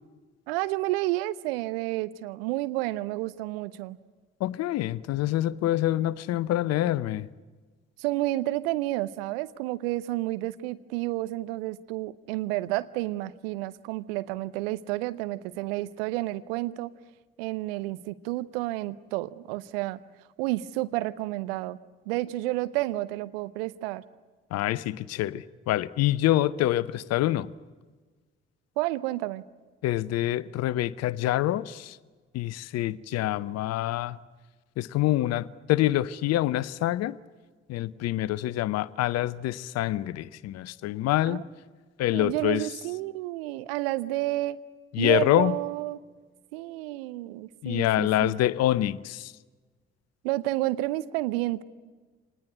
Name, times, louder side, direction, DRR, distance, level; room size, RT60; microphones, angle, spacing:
voice 1, 0.5-4.0 8.0-16.9 17.4-20.0 20.4-21.8 22.1-24.0 28.8-29.4 41.3-41.4 42.1-44.6 45.0-46.0 46.5-48.4 50.2-51.6, right 17 dB, 70° right, 0.8 m, -30 dB
voice 2, 4.4-7.3 24.5-27.5 29.8-32.0 32.3-34.2 34.8-37.2 37.7-41.4 42.0-42.7 44.9-45.6 47.6-49.3, left 14 dB, 55° left, 0.7 m, -26 dB
25.0 x 19.5 x 9.4 m
figure-of-eight pair, 45°, 30 cm